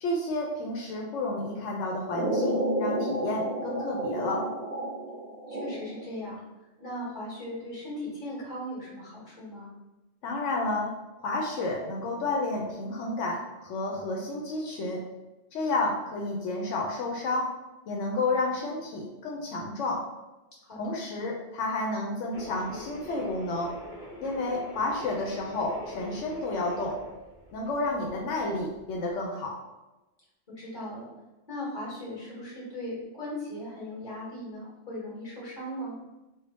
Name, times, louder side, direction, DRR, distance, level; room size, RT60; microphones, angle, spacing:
voice 1, 0.0-4.5 10.2-10.9 11.2-15.0 15.5-17.5 17.9-20.0 20.8-23.7 24.2-27.0 27.5-29.6, left 2 dB, 85° left, -1 dB, 0.9 m, -31 dB
sound 1, 2.1-6.1, right 1 dB, 50° right, 0.6 m, -31 dB
voice 2, 5.5-6.4 6.8-9.7 20.6-21.0 30.6-31.1 31.5-35.9, left 1 dB, 40° left, -6 dB, 1.6 m, -38 dB
sound 2, 22.3-29.2, left 1 dB, 25° left, 1.4 m, -44 dB
3.5 x 2.1 x 4.0 m, 1.0 s
omnidirectional pair, 1.2 m